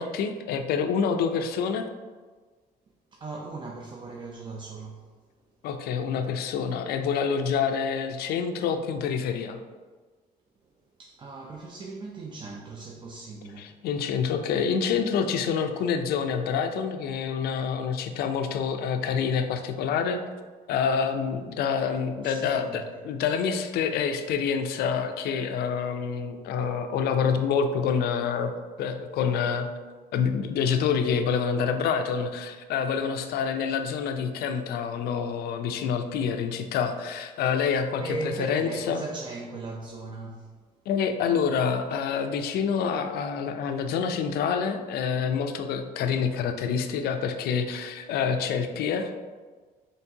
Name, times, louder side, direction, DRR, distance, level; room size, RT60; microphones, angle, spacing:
voice 1, 0.0-1.9 5.6-9.6 13.6-20.2 20.7-28.5 28.8-29.7 30.1-39.0 40.9-49.3, left 6 dB, 70° left, 7 dB, 0.4 m, -27 dB
voice 2, 3.1-5.1 11.0-13.8 22.2-23.0 38.0-40.5, right 3 dB, 30° right, -1 dB, 0.4 m, -38 dB
4.4 x 3.1 x 2.7 m, 1.4 s
cardioid pair, 110°, 17 cm